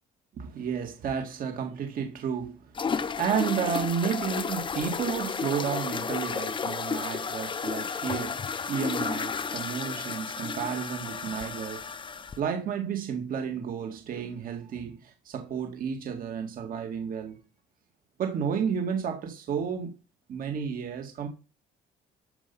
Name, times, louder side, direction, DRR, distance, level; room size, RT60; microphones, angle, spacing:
voice 1, 0.3-2.8 3.2-17.4 18.2-19.9 20.3-21.3, right 7 dB, 55° right, 2.1 m, -32 dB
sound 1, 2.7-12.4, left 6 dB, 30° left, 0.9 m, -32 dB
13.0 x 5.8 x 5.5 m
cardioid pair, 110°, 17 cm